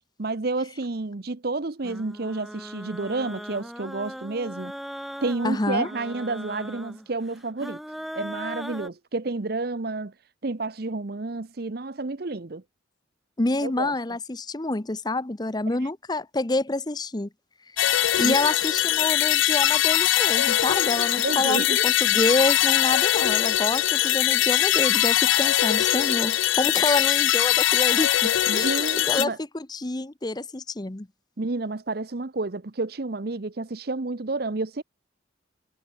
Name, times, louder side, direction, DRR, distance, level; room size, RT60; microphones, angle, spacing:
voice 1, 0.2-4.7 5.2-7.8 8.1-10.1 10.4-12.6 13.6-13.9 18.2-18.4 21.2-21.8 28.5-29.4 31.4-34.8, right 3 dB, 55° right, 0.8 m, -30 dB
sound 1, 1.8-8.9, equal, ahead, 1.0 m, -39 dB
voice 2, 5.4-5.9 13.4-17.3 18.2-31.1, left 2 dB, 20° left, 0.8 m, -27 dB
sound 2, 17.8-29.2, left 13 dB, 90° left, 0.4 m, -22 dB
head